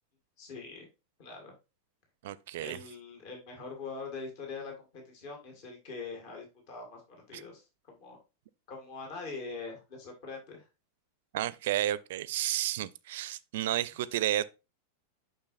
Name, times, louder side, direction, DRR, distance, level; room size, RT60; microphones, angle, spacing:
voice 1, 0.4-0.9 1.2-1.5 2.6-7.6 7.9-8.2 8.7-10.6, left 4 dB, 45° left, 2.1 m, -43 dB
voice 2, 2.2-2.8 7.3-7.4 11.3-14.4, right 13 dB, 55° right, 0.4 m, -31 dB
6.7 x 5.8 x 2.6 m
figure-of-eight pair, 90°, 0 cm